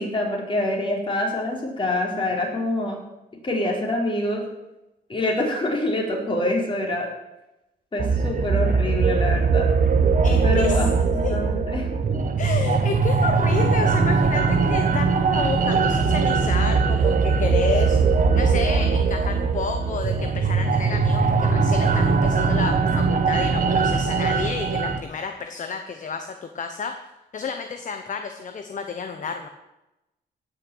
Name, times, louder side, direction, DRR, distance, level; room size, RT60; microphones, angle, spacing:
voice 1, 0.0-3.0 3.4-4.4 5.1-7.1 7.9-9.7 10.4-10.9 11.1-12.2, left 1 dB, 30° left, -1 dB, 4.5 m, -26 dB
sound 1, 8.0-25.0, right 4 dB, 50° right, 1.5 m, -21 dB
voice 2, 10.2-10.8 11.2-11.3 12.4-27.0 27.3-29.5, left 5 dB, 45° left, 6 dB, 1.1 m, -31 dB
16.5 x 6.2 x 8.8 m, 0.96 s
cardioid pair, 115°, 18 cm